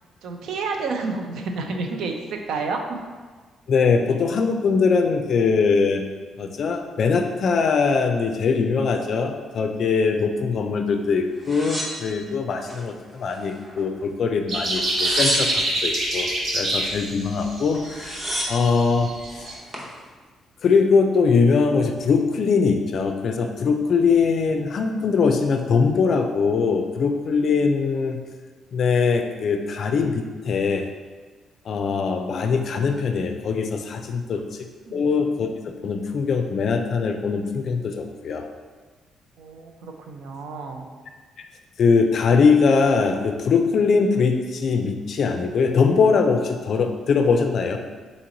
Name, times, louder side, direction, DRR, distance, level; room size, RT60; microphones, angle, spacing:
voice 1, 0.2-2.8 34.3-34.5 34.9-35.0 39.4-40.9, right 4 dB, 80° right, 3 dB, 0.5 m, -30 dB
voice 2, 3.7-6.0 6.4-18.2 18.5-19.1 20.6-28.2 28.7-30.9 31.7-34.6 34.9-38.5 41.4-41.5 41.8-47.8, left 5 dB, 50° left, 6 dB, 0.4 m, -21 dB
sound 1, 11.4-12.8 13.2-14.0 14.8-15.9 17.4-17.5 17.7-18.7 19.4-19.9, equal, 20° right, 0.7 m, -31 dB
sound 2, 14.5-19.5, right 1 dB, 50° right, 0.9 m, -26 dB
4.0 x 3.0 x 3.8 m, 1.4 s
cardioid pair, 155°, 0 cm